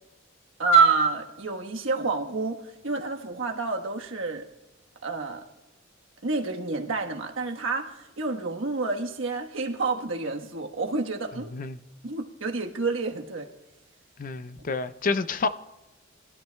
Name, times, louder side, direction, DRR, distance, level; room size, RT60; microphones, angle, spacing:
voice 1, 0.6-4.5 5.0-5.5 6.2-11.5 12.0-13.5, right 4 dB, 75° right, 1.3 m, -27 dB
voice 2, 14.2-15.5, left 4 dB, 40° left, 0.5 m, -28 dB
21.5 x 13.0 x 2.2 m
head